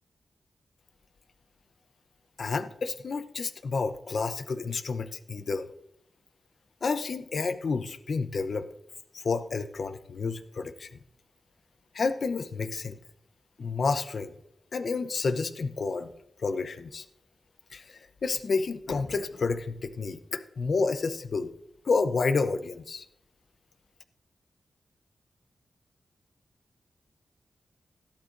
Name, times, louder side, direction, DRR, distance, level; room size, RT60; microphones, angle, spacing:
voice 1, 2.4-5.7 6.8-8.7 9.1-10.9 11.9-13.0 13.6-14.3 14.7-16.1 16.4-17.0 17.7-21.5 21.9-23.0, left 4 dB, 60° left, 10 dB, 0.7 m, -30 dB
14.5 x 12.0 x 2.6 m, 0.77 s
wide cardioid pair, 95°, 0 cm